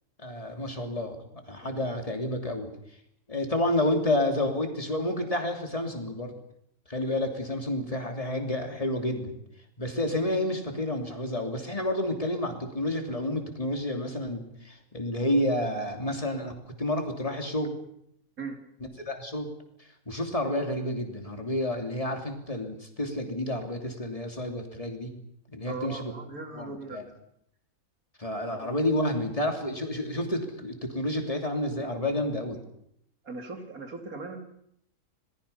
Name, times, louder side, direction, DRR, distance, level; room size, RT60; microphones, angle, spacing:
voice 1, 0.2-2.7 3.3-6.3 6.9-9.4 9.8-17.8 19.1-19.5 19.8-25.1 25.5-26.1 26.5-27.0 28.2-32.6, left 1 dB, 25° left, 4 dB, 2.9 m, -30 dB
voice 2, 25.7-27.0 28.5-28.7 33.2-34.4, right 4 dB, 80° right, 4 dB, 3.1 m, -38 dB
27.0 x 19.0 x 5.7 m, 0.73 s
omnidirectional pair, 1.5 m